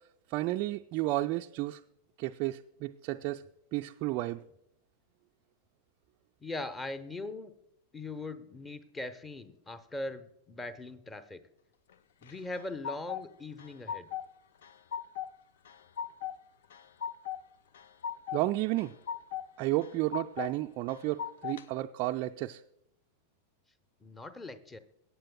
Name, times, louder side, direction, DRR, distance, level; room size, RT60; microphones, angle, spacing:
voice 1, 0.3-1.8 2.2-3.5 3.7-4.4 18.3-19.0 19.6-22.6, right 17 dB, 40° right, 5 dB, 0.3 m, -32 dB
voice 2, 6.4-7.5 7.9-11.4 12.2-14.1 24.0-24.8, left 2 dB, 15° left, 12 dB, 0.8 m, -40 dB
sound 1, 12.2-13.2 13.6-14.3 14.6-15.3 15.7-16.4 16.7-17.4 17.7-18.4 18.8-19.5 19.8-20.5 20.9-21.6, left 8 dB, 60° left, 0.5 m, -38 dB
22.0 x 8.9 x 2.2 m, 0.80 s
figure-of-eight pair, 90°, 0 cm